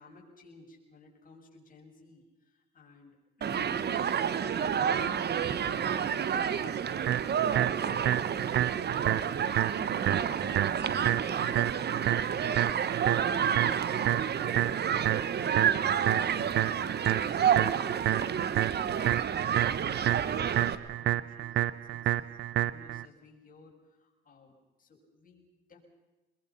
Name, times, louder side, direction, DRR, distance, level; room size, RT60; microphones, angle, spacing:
voice 1, 0.0-3.8 4.6-25.8, left 3 dB, 45° left, 0 dB, 6.9 m, -54 dB
Human group actions, 3.4-20.7, right 8 dB, 55° right, 1.3 m, -30 dB
sound 1, 7.1-23.0, right 13 dB, 70° right, 0.7 m, -30 dB
24.0 x 22.0 x 5.7 m, 1.1 s
cardioid pair, 90°, 20 cm